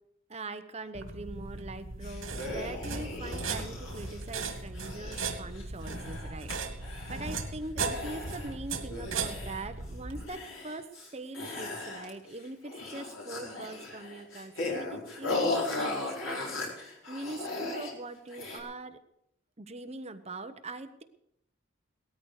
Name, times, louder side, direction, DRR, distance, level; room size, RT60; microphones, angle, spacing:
voice 1, 0.3-16.8 17.1-19.0 19.6-21.0, right 2 dB, 35° right, 9 dB, 1.0 m, -42 dB
sound 1, 0.9-10.2, right 4 dB, 80° right, 2.3 m, -37 dB
sound 2, 2.0-6.5 6.8-7.5 7.8-8.5 8.9-9.8 10.1-11.1 11.3-12.3 12.6-17.9 18.3-18.6, left 2 dB, 85° left, 4.7 m, -37 dB
18.5 x 13.5 x 4.9 m, 0.77 s
head